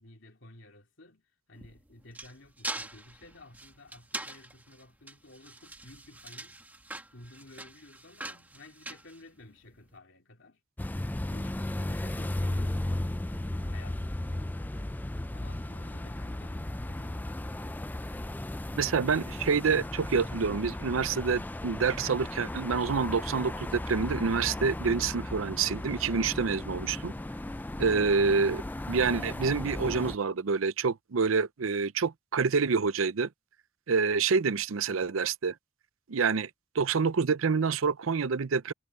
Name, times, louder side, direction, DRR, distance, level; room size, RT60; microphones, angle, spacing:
voice 1, 0.0-6.6 7.1-10.6 11.3-14.8 15.3-17.8, left 2 dB, 65° left, 3.3 m, -53 dB
sound 1, 1.5-9.8, right 2 dB, 10° right, 1.6 m, -43 dB
sound 2, 10.8-30.2, left 1 dB, 10° left, 0.4 m, -35 dB
voice 2, 18.7-27.1 27.8-33.3 33.9-35.5 36.1-36.5 36.7-38.7, right 5 dB, 85° right, 0.6 m, -27 dB
head